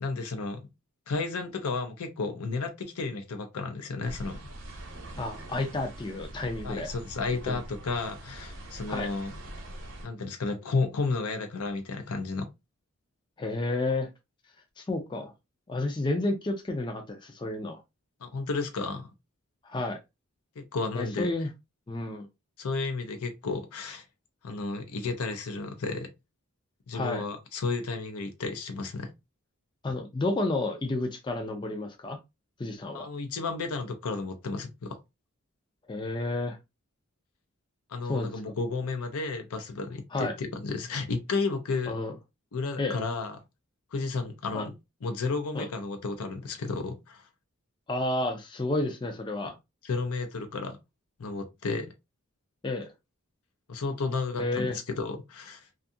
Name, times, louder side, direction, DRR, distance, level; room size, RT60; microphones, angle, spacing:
voice 1, 0.0-0.6 1.1-4.4 6.6-9.3 10.0-12.5 18.2-19.1 20.6-21.3 22.6-24.0 24.4-26.1 26.9-29.1 32.9-35.0 37.9-41.9 42.5-43.4 43.9-44.7 45.0-47.2 49.4-49.5 49.8-50.8 51.2-51.9 53.7-55.7, left 3 dB, 85° left, 0.6 m, -32 dB
sound 1, 4.0-10.1, right 1 dB, 55° right, 0.7 m, -43 dB
voice 2, 5.2-6.9 7.5-7.6 8.9-9.1 13.4-14.1 14.8-15.3 15.7-17.8 19.6-20.0 20.9-21.5 21.9-22.3 26.9-27.2 29.8-32.2 32.6-33.1 35.9-36.6 38.1-38.3 40.1-40.3 41.9-42.1 42.8-43.0 44.5-44.6 45.5-45.7 47.9-49.6 52.6-52.9 54.4-54.8, left 2 dB, 20° left, 0.3 m, -31 dB
2.6 x 2.4 x 2.5 m
head